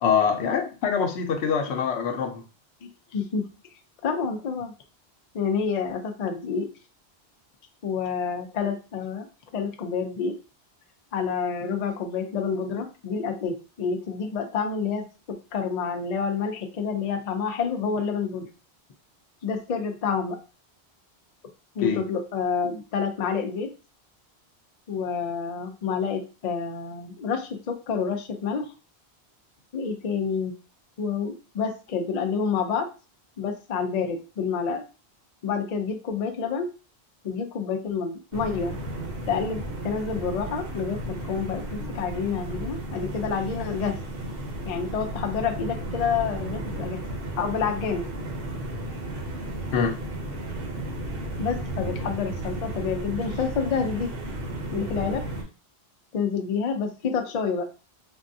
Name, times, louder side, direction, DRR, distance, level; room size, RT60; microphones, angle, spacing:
voice 1, 0.0-2.4 21.8-22.0 49.7-50.0, left 6 dB, 90° left, 0.9 m, -24 dB
voice 2, 3.1-3.5 4.0-4.7 5.3-6.7 7.8-9.3 9.5-10.4 11.1-18.5 19.4-20.4 21.8-23.7 24.9-28.7 29.7-30.6 31.0-32.9 33.4-34.8 35.4-36.7 37.2-38.8 39.3-44.0 44.6-47.0 47.4-48.1 51.4-54.1 54.7-55.3 56.1-57.7, left 6 dB, 50° left, 0.5 m, -28 dB
sound 1, 38.3-55.4, right 1 dB, 65° right, 0.9 m, -34 dB
3.4 x 2.2 x 2.6 m
omnidirectional pair, 1.1 m